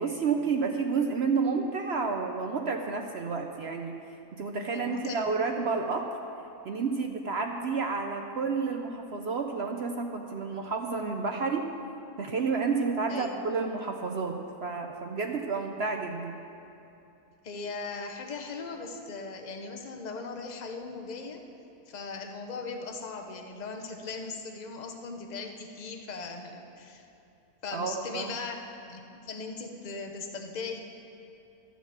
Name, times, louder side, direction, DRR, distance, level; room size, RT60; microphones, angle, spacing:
voice 1, 0.0-4.0 4.3-6.1 6.6-11.7 12.2-16.4 27.7-28.4, right 4 dB, 60° right, 3 dB, 0.7 m, -30 dB
voice 2, 4.7-5.2 13.1-13.4 17.4-21.4 21.9-27.0 27.6-30.8, left 4 dB, 35° left, 3 dB, 0.8 m, -39 dB
12.5 x 7.2 x 7.4 m, 2.8 s
omnidirectional pair, 1.7 m